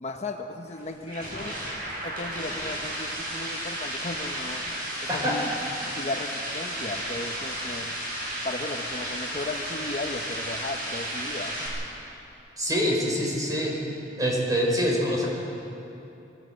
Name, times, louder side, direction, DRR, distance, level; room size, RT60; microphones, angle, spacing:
voice 1, 0.0-1.6 2.0-4.6 5.1-5.5 5.8-7.9 8.4-11.7, left 2 dB, 40° left, 4 dB, 1.0 m, -35 dB
sound 1, 0.7-11.7, right 1 dB, 55° right, 6.9 m, -33 dB
voice 2, 5.1-5.4 12.6-13.8 14.2-15.3, equal, 20° right, -1 dB, 4.4 m, -25 dB
22.0 x 16.5 x 7.8 m, 2.9 s
head